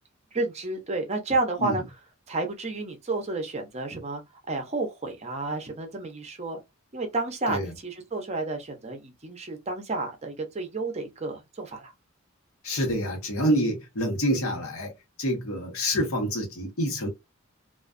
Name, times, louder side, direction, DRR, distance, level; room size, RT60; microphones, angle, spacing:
voice 1, 0.3-1.8 2.3-4.2 4.5-6.6 6.9-11.9, right 2 dB, 30° right, 0.6 m, -31 dB
voice 2, 12.6-14.9 15.2-17.1, equal, 85° left, 1.0 m, -27 dB
2.4 x 2.3 x 2.4 m
head